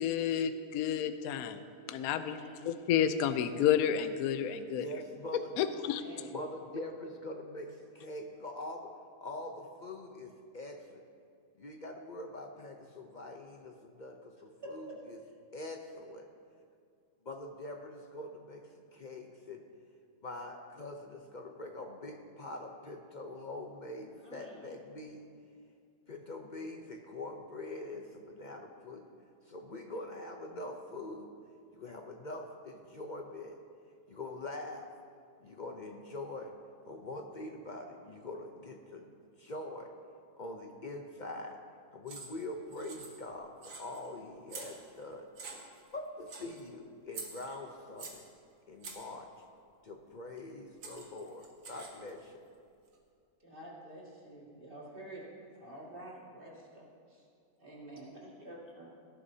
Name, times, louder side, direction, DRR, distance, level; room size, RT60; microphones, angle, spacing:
voice 1, 0.0-1.6 1.9-4.8 5.6-6.0, left 9 dB, 70° left, 10 dB, 1.0 m, -30 dB
voice 2, 2.1-2.6 5.7-6.3 14.6-15.0 24.1-24.6 53.4-55.3 55.5-56.8 57.1-57.2 57.6-58.9, right 1 dB, 35° right, -5 dB, 2.2 m, -48 dB
voice 3, 4.7-5.6 6.3-8.9 9.2-11.0 11.6-15.2 15.5-16.3 17.2-19.6 20.2-25.2 26.1-29.1 29.4-31.3 31.7-33.6 34.1-34.9 35.4-36.5 36.9-39.1 39.4-39.9 40.4-41.6 41.9-45.3 45.9-48.2 48.7-49.3 49.8-52.5, left 2 dB, 50° left, 3 dB, 0.5 m, -44 dB
sound 1, 42.1-42.4 42.7-43.3 43.6-44.1 44.5-45.0 45.4-45.9 46.3-46.6 47.1-48.3 48.8-49.1 50.4-50.5 50.8-52.1, right 4 dB, 75° right, 1.9 m, -46 dB
18.5 x 11.0 x 2.8 m, 2.3 s
omnidirectional pair, 1.8 m